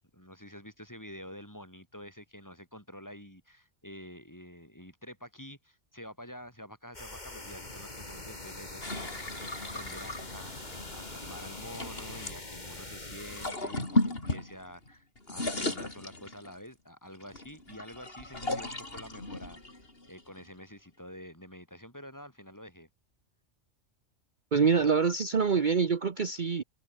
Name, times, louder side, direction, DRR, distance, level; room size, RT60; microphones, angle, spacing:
voice 1, 0.1-22.9, equal, 15° left, 7.4 m, -48 dB
sound 1, 6.9-13.5, left 2 dB, 40° left, 3.5 m, -44 dB
sound 2, 8.8-12.4 13.2-14.9 15.2-16.7 17.2-20.6, left 2 dB, 55° left, 4.6 m, -35 dB
voice 2, 24.5-26.6, right 5 dB, 45° right, 1.2 m, -25 dB
omnidirectional pair, 1.2 m